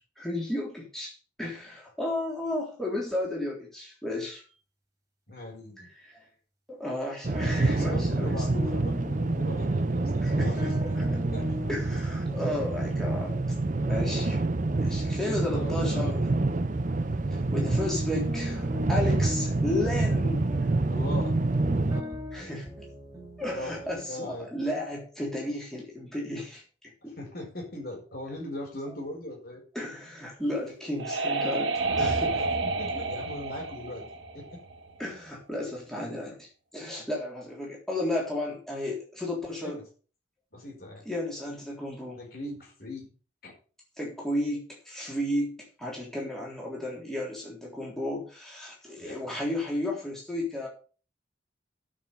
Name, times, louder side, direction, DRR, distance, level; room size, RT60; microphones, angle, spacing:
voice 1, 0.2-4.4 5.8-6.2 6.7-8.4 10.2-11.2 11.7-13.3 13.9-14.4 14.7-16.3 17.3-20.7 22.3-22.7 23.4-27.1 29.7-32.5 35.0-36.5 36.7-39.8 41.1-42.2 44.0-50.7, left 1 dB, ahead, -4 dB, 3.6 m, -33 dB
voice 2, 5.3-5.9 7.6-11.0 11.3-11.7 12.3-12.4 14.7-16.4 20.9-21.4 21.8-22.6 23.5-24.5 27.0-29.6 32.6-34.0 34.3-34.6 39.6-39.8 40.5-41.0 42.1-43.1 43.4-43.5 49.0-49.2, left 1 dB, 50° left, 1 dB, 4.8 m, -40 dB
sound 1, 7.2-22.0, right 2 dB, 40° right, 0.6 m, -27 dB
sound 2, 7.3-17.5 17.7-24.0, left 1 dB, 15° right, 3.9 m, -41 dB
sound 3, 30.4-35.0, right 3 dB, 85° right, 1.7 m, -30 dB
9.6 x 6.4 x 7.0 m, 0.38 s
head